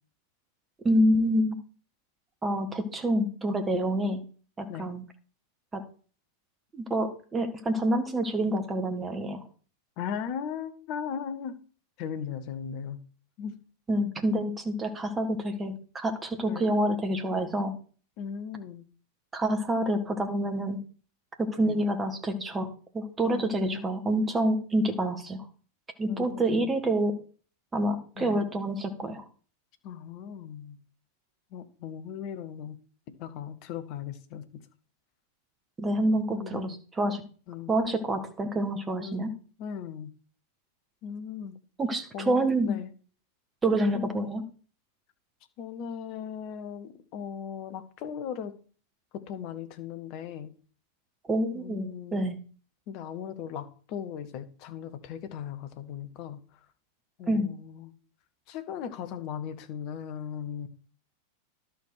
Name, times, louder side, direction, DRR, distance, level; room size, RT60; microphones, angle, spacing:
voice 1, 0.8-1.6 2.4-4.2 4.6-5.0 5.7-5.8 6.7-9.4 13.9-17.7 19.3-20.8 21.4-22.7 22.9-25.4 26.0-27.2 27.7-29.2 35.8-37.2 37.7-39.3 41.8-42.7 43.6-44.4 51.3-52.4 57.3-57.5, right 1 dB, 15° right, 1.6 m, -27 dB
voice 2, 10.0-11.6 12.0-13.0 13.4-13.6 16.5-16.7 18.2-18.9 21.6-21.8 23.3-24.0 26.1-26.7 28.2-28.4 29.8-30.8 31.5-32.8 33.1-34.6 36.3-36.8 37.5-37.7 39.0-40.1 41.0-41.6 42.1-42.9 43.9-44.3 45.6-48.6 49.1-50.5 51.5-52.2 52.9-56.4 57.2-57.9 58.5-60.7, left 8 dB, 45° left, 1.1 m, -38 dB
11.5 x 4.7 x 6.4 m
figure-of-eight pair, 90°, 0 cm